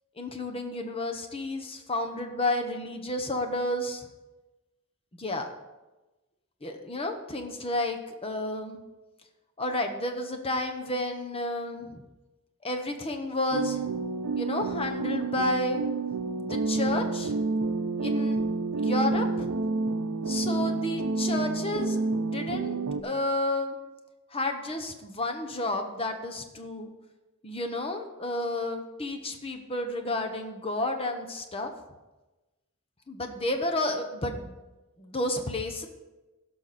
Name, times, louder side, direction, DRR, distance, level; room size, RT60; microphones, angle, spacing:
voice 1, 0.2-4.1 5.2-5.5 6.6-8.8 9.6-12.0 12.6-13.8 14.4-15.9 16.4-17.3 18.0-18.4 18.7-19.5 20.3-23.8 24.3-26.9 27.4-31.7 33.1-34.6 35.0-35.9, left 1 dB, 25° left, 5 dB, 1.0 m, -31 dB
sound 1, 13.5-23.0, right 3 dB, 80° right, 0.7 m, -29 dB
16.0 x 6.0 x 4.2 m, 1.1 s
head